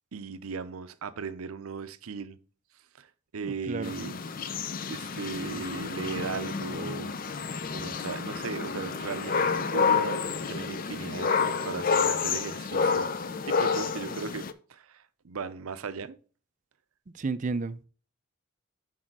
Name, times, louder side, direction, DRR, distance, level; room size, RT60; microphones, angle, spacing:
voice 1, 0.1-2.4 3.0-3.1 3.3-4.2 4.9-13.1 13.4-16.2, right 5 dB, 85° right, 0.6 m, -37 dB
voice 2, 3.4-4.1 17.1-17.8, right 3 dB, 35° right, 0.4 m, -33 dB
sound 1, 3.8-14.5, left 5 dB, 40° left, 0.5 m, -29 dB
6.5 x 4.3 x 5.9 m
head